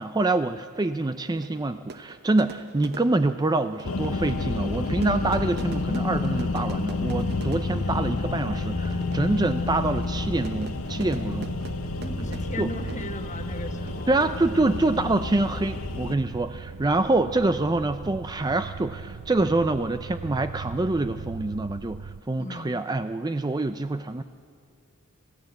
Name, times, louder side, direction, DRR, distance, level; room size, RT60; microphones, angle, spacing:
voice 1, 0.0-11.5 12.6-12.7 14.1-24.2, right 2 dB, 20° right, 10 dB, 0.5 m, -26 dB
Fire / Fireworks, 1.0-15.1, right 2 dB, 50° right, 1.0 m, -45 dB
sound 1, 3.8-16.2, left 3 dB, 80° left, 0.8 m, -30 dB
sound 2, 6.3-22.2, right 5 dB, 70° right, 0.5 m, -40 dB
voice 2, 12.0-14.1 22.4-22.7, left 2 dB, 35° left, 6 dB, 1.5 m, -36 dB
26.5 x 16.0 x 8.0 m, 2.1 s
head